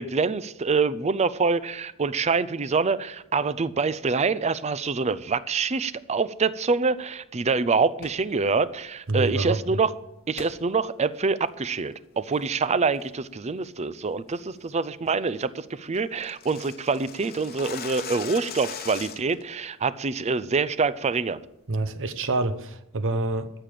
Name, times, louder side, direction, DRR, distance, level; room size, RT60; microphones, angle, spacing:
voice 1, 0.0-9.9 10.3-21.4, right 4 dB, 30° right, 0.5 m, -25 dB
sound 1, 7.9-8.3 10.4-10.6 11.0-11.1 11.7-11.9 12.3-12.7 13.0-13.3 13.6-13.7 14.1-14.4 14.7-14.8 15.1-15.2 15.4-15.5 15.8-19.4, left 7 dB, 45° left, 1.0 m, -40 dB
voice 2, 9.1-9.8 21.7-23.5, right 2 dB, 60° right, 0.9 m, -27 dB
13.5 x 6.7 x 7.7 m
head